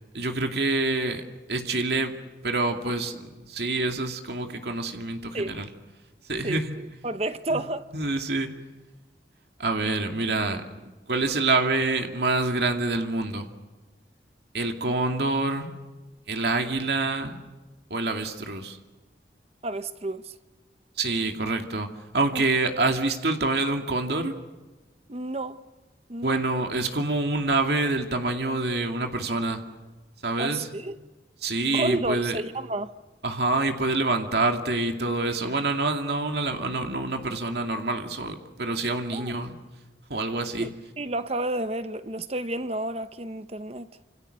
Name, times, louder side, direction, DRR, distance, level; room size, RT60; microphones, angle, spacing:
voice 1, 0.1-1.2 1.5-2.2 2.4-5.7 6.3-6.8 7.5-7.6 7.9-8.5 9.6-10.6 11.1-13.5 14.5-15.7 16.3-17.4 17.9-18.8 21.0-24.3 26.2-29.6 30.2-30.7 31.4-32.4 33.2-39.5 40.1-40.7, right 2 dB, 65° right, 2.5 m, -26 dB
voice 2, 6.4-7.9 19.6-20.3 22.3-22.4 25.1-25.6 26.1-26.4 30.4-31.0 31.7-32.9 39.1-39.3 40.6-40.7 41.0-43.9, right 2 dB, 35° right, 0.9 m, -31 dB
29.0 x 27.5 x 6.7 m
head